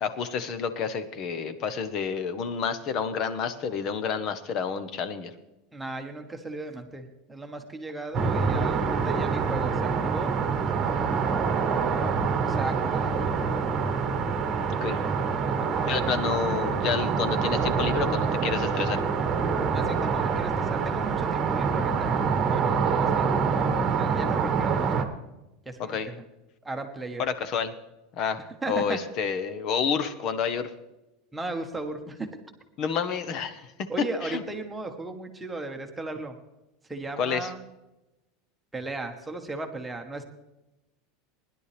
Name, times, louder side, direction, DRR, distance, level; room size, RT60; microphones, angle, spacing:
voice 1, 0.0-5.3 14.8-15.0 15.9-19.0 25.8-26.1 27.2-27.7 28.2-30.7 32.8-33.7 34.2-34.4 37.2-37.5, left 6 dB, 35° left, 12 dB, 1.0 m, -29 dB
voice 2, 5.7-10.3 12.4-13.7 15.4-16.0 19.7-22.1 22.5-25.1 25.6-26.2 26.6-27.2 28.6-29.0 31.3-32.3 33.9-36.3 36.9-37.6 38.7-40.2, right 2 dB, 5° right, 4 dB, 1.2 m, -36 dB
sound 1, 8.1-25.1, right 5 dB, 25° right, 1.3 m, -26 dB
19.5 x 11.0 x 3.4 m, 0.98 s
supercardioid pair, 175°, 0 cm